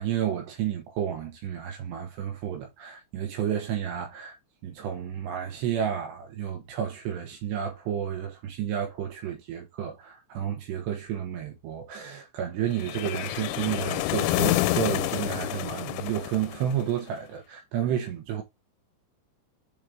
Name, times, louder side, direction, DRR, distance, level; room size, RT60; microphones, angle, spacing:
voice 1, 0.0-4.4 4.6-18.4, right 9 dB, 70° right, 3.1 m, -31 dB
sound 1, 12.8-17.0, left 15 dB, 85° left, 3.0 m, -28 dB
8.4 x 4.6 x 3.5 m
omnidirectional pair, 5.5 m